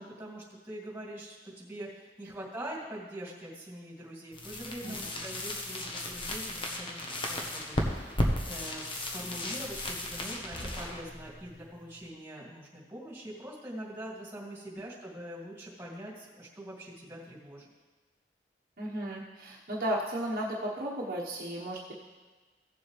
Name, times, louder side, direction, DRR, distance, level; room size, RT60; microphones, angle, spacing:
voice 1, 0.0-17.7, right 1 dB, 15° right, -5 dB, 2.4 m, -43 dB
sound 1, 4.3-12.1, left 1 dB, 30° left, 1.1 m, -35 dB
voice 2, 18.8-21.9, right 1 dB, 55° right, -5 dB, 1.2 m, -34 dB
16.5 x 7.2 x 3.3 m, 1.3 s
head